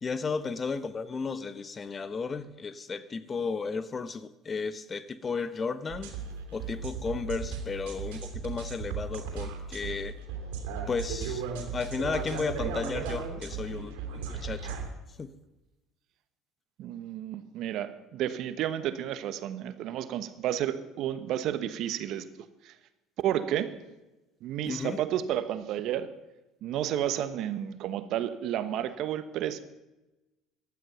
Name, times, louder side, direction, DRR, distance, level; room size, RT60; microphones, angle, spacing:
voice 1, 0.0-6.2 6.5-10.1 10.9-11.4 11.7-14.8 15.2-15.3 24.7-25.0, left 4 dB, 30° left, 14 dB, 1.0 m, -34 dB
sound 1, 5.9-14.9, right 5 dB, 80° right, 3.0 m, -36 dB
voice 2, 16.8-22.3 22.6-22.7 23.2-23.7 24.4-26.1 26.6-29.6, right 11 dB, 65° right, 12 dB, 1.1 m, -31 dB
15.5 x 12.0 x 5.7 m, 1.0 s
hypercardioid pair, 75°, 0 cm